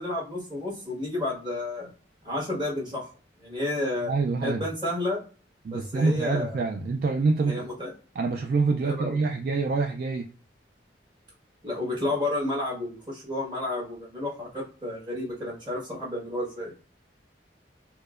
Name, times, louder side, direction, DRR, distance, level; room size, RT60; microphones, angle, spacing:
voice 1, 0.0-1.9 2.2-3.0 3.4-4.1 4.4-5.2 5.7-6.6 7.4-7.9 8.8-9.2 11.6-16.7, left 2 dB, 25° right, -4 dB, 1.4 m, -31 dB
voice 2, 4.1-4.6 5.6-7.7 8.2-10.3, right 4 dB, 50° right, 2 dB, 0.3 m, -26 dB
4.4 x 2.1 x 2.4 m, 0.37 s
head